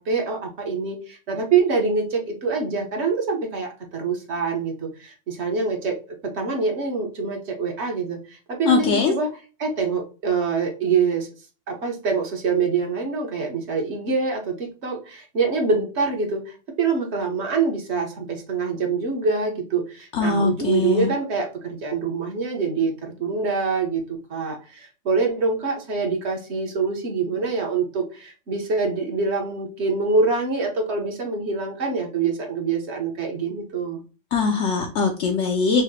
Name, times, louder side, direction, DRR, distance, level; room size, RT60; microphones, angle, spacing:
voice 1, 0.0-6.0 6.2-9.3 9.6-11.3 11.7-34.0, right 4 dB, 60° right, 2 dB, 1.4 m, -25 dB
voice 2, 8.6-9.1 20.1-21.1 34.3-35.8, left 4 dB, 75° left, 1 dB, 0.9 m, -21 dB
5.5 x 2.1 x 2.8 m, 0.34 s
omnidirectional pair, 1.3 m